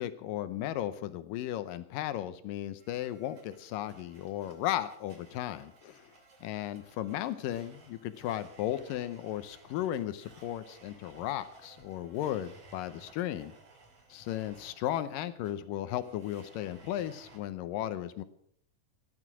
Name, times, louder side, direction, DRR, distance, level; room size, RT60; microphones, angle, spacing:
voice 1, 0.0-6.1 6.4-13.5 14.1-18.2, left 12 dB, 85° left, 13 dB, 2.5 m, -35 dB
Domestic sounds home sounds, 2.8-17.4, right 3 dB, 50° right, 3.8 m, -58 dB
16.0 x 11.0 x 6.1 m, 0.66 s
omnidirectional pair, 3.9 m